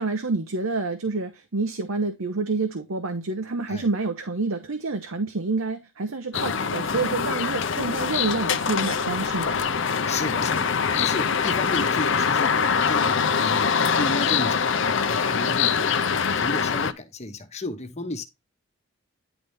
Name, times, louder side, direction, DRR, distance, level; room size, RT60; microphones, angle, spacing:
voice 1, 0.0-9.6, right 3 dB, 75° right, 0.9 m, -28 dB
sound 1, 6.3-16.9, left 6 dB, 55° left, 0.6 m, -24 dB
voice 2, 10.1-18.2, left 2 dB, 30° left, 1.1 m, -33 dB
10.0 x 4.1 x 3.5 m
head